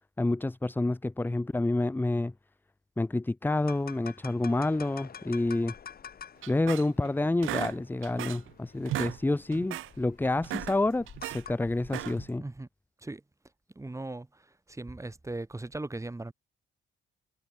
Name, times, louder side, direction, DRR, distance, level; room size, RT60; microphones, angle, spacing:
voice 1, 0.2-2.3 3.0-5.7 6.5-12.4, left 2 dB, 10° left, 0.9 m, -28 dB
sound 1, 3.6-12.3, left 7 dB, 50° left, 7.8 m, -49 dB
sound 2, 6.4-7.1 7.4-8.5 8.8-9.2 9.5-9.9 10.3-11.4 11.8-12.3, right 15 dB, 85° right, 2.3 m, -36 dB
voice 2, 13.8-14.3 14.7-16.3, right 2 dB, 15° right, 5.6 m, -38 dB
cardioid pair, 90°, 20 cm